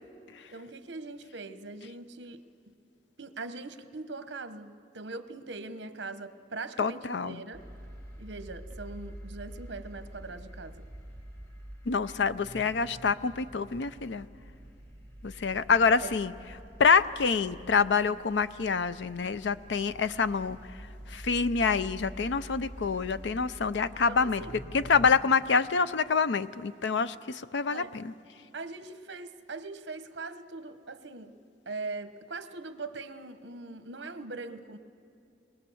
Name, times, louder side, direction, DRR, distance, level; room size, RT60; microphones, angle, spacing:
voice 1, 0.5-2.4 2.7-2.8 3.2-7.6 8.2-10.9 16.0-16.1 23.9-24.6 27.7-27.9 28.5-31.4 31.7-34.8, right 3 dB, 75° right, 1.0 m, -41 dB
voice 2, 6.8-7.4 11.9-14.3 15.2-16.3 16.8-20.6 21.1-24.4 24.7-28.1, left 5 dB, 75° left, 0.5 m, -26 dB
sound 1, 7.5-25.2, right 1 dB, 20° left, 4.9 m, -46 dB
29.0 x 21.5 x 7.1 m
head